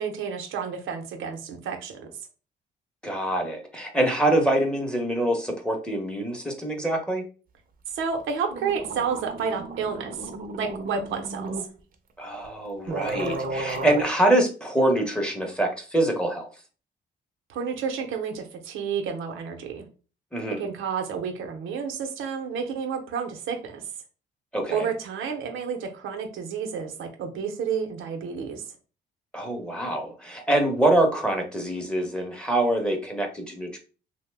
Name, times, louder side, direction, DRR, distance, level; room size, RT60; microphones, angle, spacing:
voice 1, 0.0-2.1 7.9-10.3 10.6-11.5 17.5-19.9 20.6-23.8 24.7-28.6, right 6 dB, 85° right, 3 dB, 0.7 m, -30 dB
voice 2, 3.0-7.2 12.2-16.5 20.3-20.6 24.5-24.9 29.3-33.8, right 1 dB, 5° left, 2 dB, 0.8 m, -25 dB
sound 1, 8.2-8.3 8.5-11.7 12.4-12.5 12.9-14.0, right 3 dB, 45° right, 0.6 m, -34 dB
2.8 x 2.1 x 3.3 m, 0.35 s
cardioid pair, 90°, 20 cm